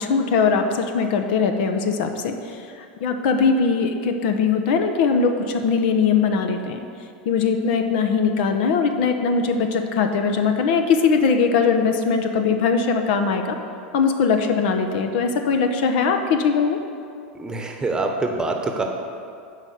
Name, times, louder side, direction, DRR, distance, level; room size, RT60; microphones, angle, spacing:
voice 1, 0.0-2.3 3.0-6.8 7.3-13.6 13.9-16.8, left 5 dB, 65° left, 6 dB, 0.8 m, -20 dB
voice 2, 17.3-18.8, right 3 dB, 15° right, 3 dB, 1.0 m, -25 dB
8.2 x 5.0 x 6.7 m, 2.4 s
hypercardioid pair, 115°, 6 cm